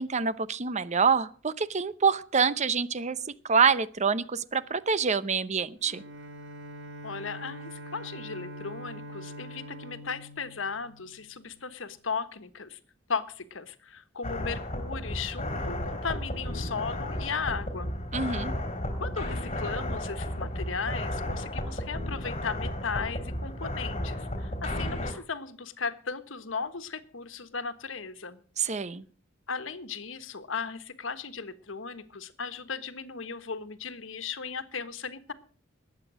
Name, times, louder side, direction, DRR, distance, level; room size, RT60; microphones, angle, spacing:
voice 1, 0.0-3.2 3.4-6.0 18.1-18.5 28.6-29.0, right 5 dB, 35° right, 16 dB, 0.7 m, -26 dB
Bowed string instrument, 5.8-11.4, equal, 75° right, 1.6 m, -44 dB
voice 2, 7.0-12.8 13.1-17.9 19.0-28.4 29.5-35.3, left 5 dB, 80° left, 11 dB, 1.4 m, -36 dB
sound 1, 14.2-25.1, left 1 dB, 35° left, 3.2 m, -33 dB
20.0 x 8.3 x 6.2 m, 0.43 s
head